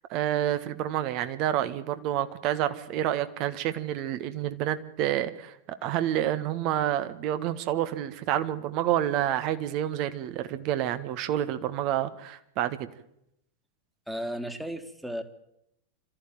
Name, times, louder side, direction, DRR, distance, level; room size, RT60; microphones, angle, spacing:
voice 1, 0.1-5.5 5.8-12.9, right 12 dB, 40° right, 12 dB, 1.6 m, -28 dB
voice 2, 14.1-15.2, equal, 5° right, 7 dB, 2.2 m, -34 dB
26.5 x 14.0 x 9.0 m, 0.80 s
figure-of-eight pair, 90°, 0 cm